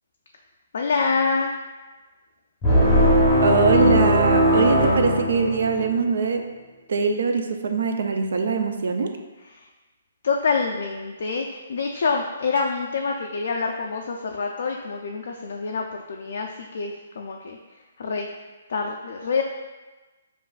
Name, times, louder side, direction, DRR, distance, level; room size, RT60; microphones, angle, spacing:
voice 1, 0.7-1.6 9.5-9.7 10.2-17.6 18.0-18.3 18.7-19.4, left 4 dB, 50° left, 1 dB, 0.3 m, -26 dB
sound 1, 2.6-6.0, equal, 10° left, 0.7 m, -19 dB
voice 2, 3.4-6.4 6.9-9.1, right 4 dB, 60° right, 5 dB, 0.4 m, -22 dB
7.1 x 2.5 x 2.4 m, 1.2 s
hypercardioid pair, 175°, 0 cm